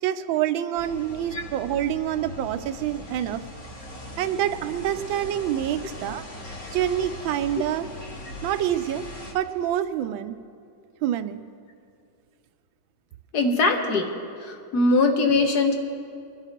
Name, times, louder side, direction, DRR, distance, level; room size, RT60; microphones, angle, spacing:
voice 1, 0.0-3.4 4.2-6.2 6.7-7.9 8.4-9.1 9.3-10.4 11.0-11.4, right 11 dB, 80° right, 11 dB, 1.4 m, -26 dB
sound 1, 0.8-9.3, left 1 dB, 40° left, 1.8 m, -40 dB
voice 2, 13.3-14.1 14.4-15.7, left 3 dB, 55° left, 4 dB, 1.7 m, -21 dB
25.0 x 9.9 x 4.4 m, 2.4 s
omnidirectional pair, 2.2 m